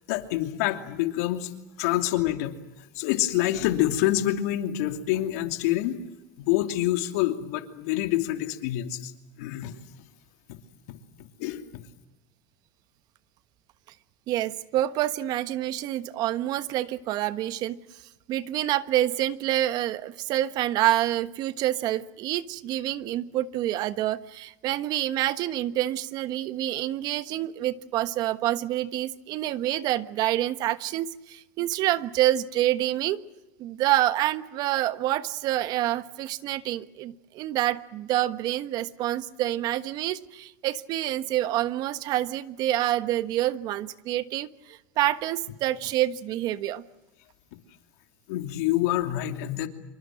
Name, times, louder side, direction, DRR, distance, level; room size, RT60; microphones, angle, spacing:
voice 1, 0.1-1.5 1.8-2.6 2.9-6.0 6.4-9.1 9.4-9.8 10.5-10.6 10.9-11.8 48.3-49.7, left 14 dB, 75° left, 6 dB, 2.8 m, -27 dB
voice 2, 14.3-17.8 18.3-33.2 33.6-46.8, right 14 dB, 50° right, 13 dB, 1.3 m, -27 dB
26.5 x 23.5 x 7.6 m, 0.98 s
supercardioid pair, 120°, 9 cm